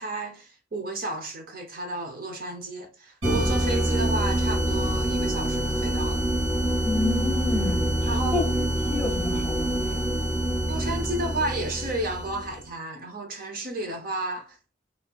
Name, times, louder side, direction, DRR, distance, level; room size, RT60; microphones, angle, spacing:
voice 1, 0.0-6.2 8.1-8.4 10.7-14.6, right 1 dB, 50° right, 0.7 m, -32 dB
sound 1, 3.2-12.6, right 1 dB, 80° right, 1.9 m, -26 dB
voice 2, 6.8-8.0 8.3-8.4 8.9-10.0, left 3 dB, 5° left, 1.2 m, -29 dB
4.1 x 3.4 x 2.3 m
head